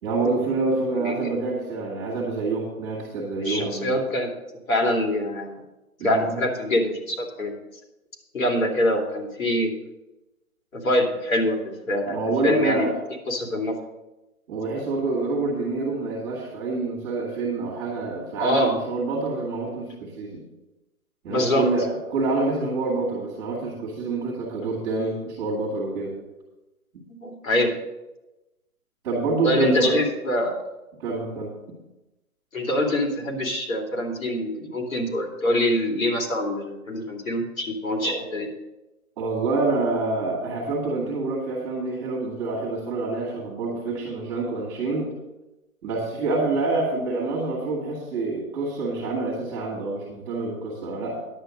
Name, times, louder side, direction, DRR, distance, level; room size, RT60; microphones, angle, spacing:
voice 1, 0.0-4.0 6.0-6.4 12.0-12.9 14.5-20.4 21.2-26.1 29.0-30.0 31.0-31.5 38.0-38.2 39.2-45.1 45.8-51.2, right 3 dB, 15° right, -3 dB, 2.1 m, -27 dB
voice 2, 1.0-1.3 3.4-4.3 4.7-5.6 6.0-7.5 8.3-9.7 10.7-11.6 11.9-12.2 12.4-12.9 13.3-13.7 18.4-18.7 21.3-21.7 27.2-27.7 29.4-30.5 32.5-38.5, left 1 dB, 65° left, 2 dB, 2.8 m, -24 dB
10.5 x 8.2 x 5.1 m, 0.99 s
hypercardioid pair, 165°, 44 cm